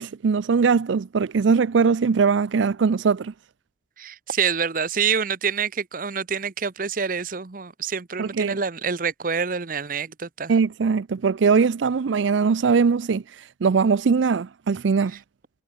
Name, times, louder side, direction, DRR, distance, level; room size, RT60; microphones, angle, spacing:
voice 1, 0.0-3.3 8.2-8.6 10.5-15.2, right 5 dB, 90° right, 0.5 m, -21 dB
voice 2, 4.0-10.5, right 6 dB, 50° right, 0.9 m, -27 dB
head